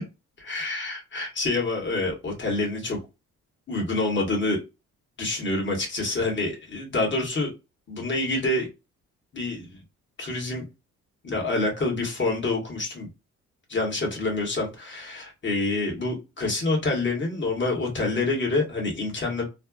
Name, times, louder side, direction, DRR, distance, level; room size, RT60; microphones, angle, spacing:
voice 1, 0.4-3.0 3.7-4.6 5.2-7.5 7.9-8.7 9.3-9.8 10.2-10.6 11.2-13.1 13.7-19.5, left 2 dB, 40° left, 0 dB, 1.6 m, -27 dB
3.3 x 2.3 x 2.3 m, 0.26 s
cardioid pair, 90°, 30 cm